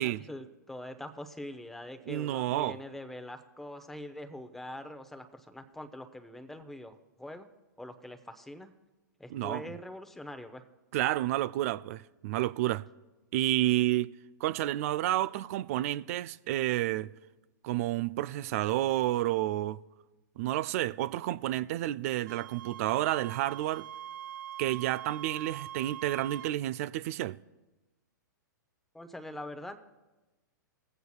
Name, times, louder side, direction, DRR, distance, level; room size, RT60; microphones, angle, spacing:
voice 1, 0.0-7.5 7.8-8.7 9.2-10.6 28.9-29.8, left 1 dB, 5° left, 0.7 m, -43 dB
voice 2, 2.1-2.8 9.3-9.6 10.9-12.8 13.3-14.1 14.4-17.1 17.6-19.8 20.4-23.8 24.6-27.4, right 14 dB, 45° right, 0.3 m, -30 dB
Wind instrument woodwind instrument, 22.3-26.5, right 11 dB, 70° right, 0.8 m, -43 dB
20.0 x 8.0 x 2.3 m
hypercardioid pair, 115°, 10 cm